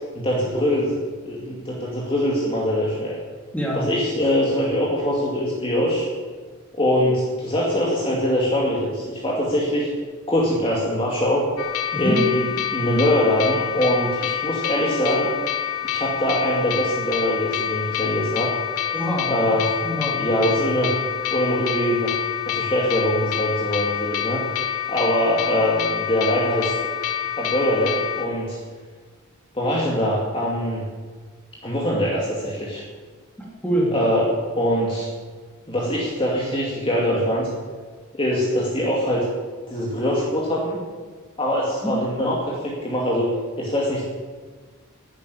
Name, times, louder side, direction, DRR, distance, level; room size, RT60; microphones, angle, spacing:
voice 1, 0.1-1.0 1.2-3.2 3.7-6.1 6.7-9.9 10.3-11.5 12.0-12.4 12.7-15.3 15.8-18.5 19.3-19.7 20.2-20.9 21.3-22.2 22.4-26.9 27.4-28.6 29.5-30.9 31.6-32.8 33.9-34.2 34.6-35.1 35.7-37.5 38.1-39.3 39.7-40.8 41.4-43.3 43.6-44.1, equal, 25° left, -4 dB, 2.5 m, -23 dB
voice 2, 3.5-3.9 11.9-12.2 18.9-19.4 19.8-20.3 33.4-34.0 41.8-42.0, equal, 5° left, -4 dB, 3.6 m, -25 dB
sound 1, 11.6-28.3, left 10 dB, 75° left, 1.2 m, -27 dB
12.0 x 10.5 x 9.8 m, 1.5 s
head